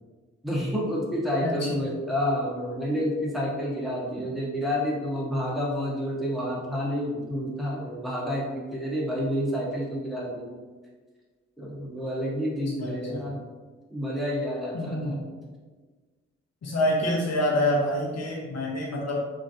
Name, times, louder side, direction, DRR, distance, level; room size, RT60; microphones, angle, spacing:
voice 1, 0.4-10.5 11.6-13.4 13.9-15.2, equal, ahead, -5 dB, 1.0 m, -29 dB
voice 2, 1.4-1.8 12.8-13.3 14.7-15.2 16.6-19.2, left 1 dB, 50° left, -2 dB, 0.9 m, -27 dB
3.1 x 2.6 x 2.6 m, 1.4 s
hypercardioid pair, 40°, 33 cm